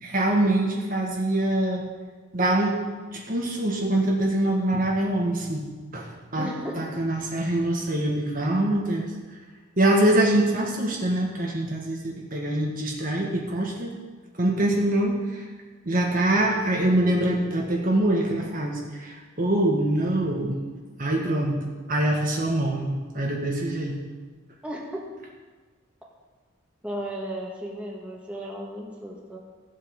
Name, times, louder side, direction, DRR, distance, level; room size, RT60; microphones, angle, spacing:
voice 1, 0.0-1.8 2.3-2.8 3.1-5.6 5.9-6.5 6.8-9.1 9.8-13.9 14.4-15.4 15.9-20.6 21.0-24.0, right 1 dB, 45° right, -1 dB, 1.6 m, -24 dB
voice 2, 6.4-6.9 24.6-25.1 26.8-29.4, equal, 5° right, -3 dB, 2.1 m, -35 dB
15.5 x 7.9 x 5.3 m, 1.4 s
head